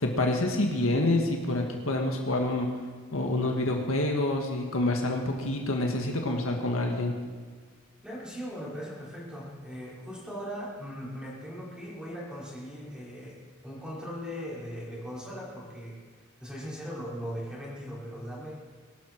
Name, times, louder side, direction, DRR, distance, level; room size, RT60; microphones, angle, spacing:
voice 1, 0.0-2.7 3.1-7.1, left 2 dB, 65° left, 2 dB, 1.8 m, -27 dB
voice 2, 8.0-16.0 16.4-18.5, equal, 5° right, -7 dB, 5.4 m, -39 dB
23.0 x 12.0 x 4.7 m, 1.5 s
head